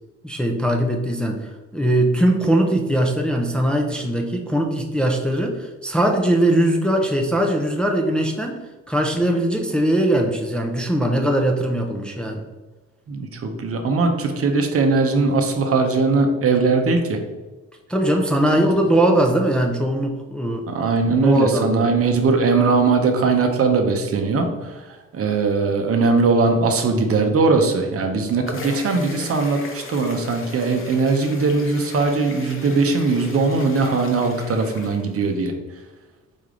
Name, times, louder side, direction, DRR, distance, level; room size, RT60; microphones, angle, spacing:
voice 1, 0.2-8.6 8.9-12.5 17.9-20.7 21.2-21.9, right 1 dB, 5° left, 1 dB, 0.5 m, -20 dB
voice 2, 13.1-17.2 20.7-35.5, right 4 dB, 50° right, 4 dB, 0.7 m, -20 dB
sound 1, 28.0-35.5, left 2 dB, 45° left, 0.9 m, -38 dB
4.2 x 3.4 x 3.7 m, 1.2 s
cardioid pair, 90°, 30 cm